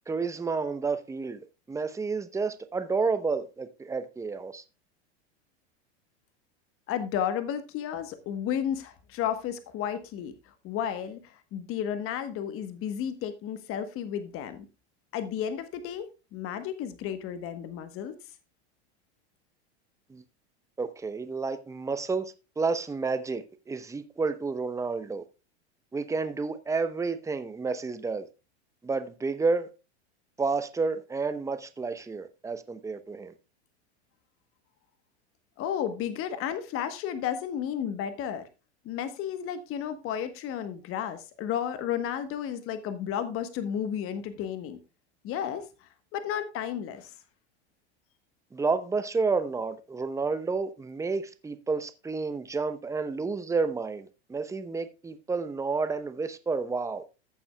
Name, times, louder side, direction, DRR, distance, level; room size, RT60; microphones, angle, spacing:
voice 1, 0.1-1.4 1.7-4.6 20.1-20.2 20.8-25.2 25.9-28.3 28.8-29.7 30.4-33.3 48.5-57.0, right 4 dB, 10° right, 0.8 m, -30 dB
voice 2, 6.9-10.3 10.6-14.6 15.1-18.1 35.6-38.5 38.8-44.8 45.2-47.1, left 9 dB, 40° left, 1.2 m, -33 dB
14.5 x 7.0 x 2.3 m
hypercardioid pair, 105°, 34 cm